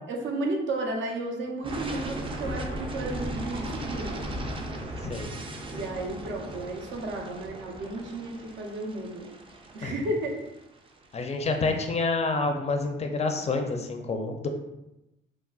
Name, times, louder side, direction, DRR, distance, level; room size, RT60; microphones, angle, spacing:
voice 1, 0.1-4.2 5.7-9.3 9.7-10.4, right 2 dB, 70° right, 1 dB, 0.6 m, -33 dB
sound 1, 1.6-11.5, right 1 dB, 25° right, 0.4 m, -37 dB
voice 2, 11.1-14.5, left 3 dB, 35° left, 4 dB, 0.4 m, -28 dB
3.7 x 2.0 x 2.3 m, 0.92 s
cardioid pair, 90°, 20 cm